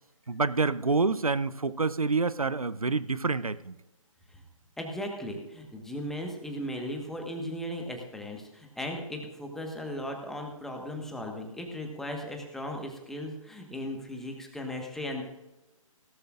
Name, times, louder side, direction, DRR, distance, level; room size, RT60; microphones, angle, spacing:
voice 1, 0.3-3.7, right 4 dB, 90° right, 15 dB, 0.7 m, -27 dB
voice 2, 4.8-15.2, left 1 dB, ahead, 2 dB, 1.3 m, -37 dB
17.0 x 13.0 x 2.5 m, 1.0 s
figure-of-eight pair, 140°, 18 cm